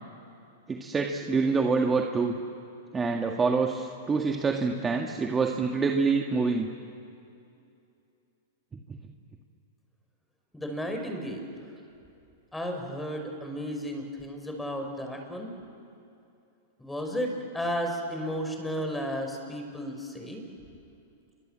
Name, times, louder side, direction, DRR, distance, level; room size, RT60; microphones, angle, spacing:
voice 1, 0.7-2.3 2.9-6.7, right 4 dB, 15° right, 2 dB, 1.8 m, -26 dB
voice 2, 10.5-11.6 12.5-15.5 16.8-20.4, equal, 5° left, 3 dB, 5.4 m, -33 dB
29.5 x 24.0 x 7.6 m, 2.6 s
hypercardioid pair, 120°, 0 cm